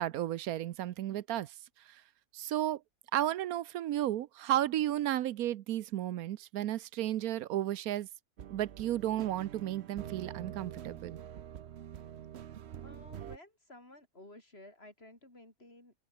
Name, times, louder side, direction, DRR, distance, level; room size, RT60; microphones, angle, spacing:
voice 1, 0.0-1.5 1.9-2.0 2.3-2.8 3.1-8.1 8.5-11.2, right 13 dB, 90° right, 1.2 m, -33 dB
sound 1, 8.4-13.4, right 10 dB, 55° right, 0.9 m, -46 dB
voice 2, 12.8-15.9, left 1 dB, 45° left, 6.3 m, -54 dB
omnidirectional pair, 1.5 m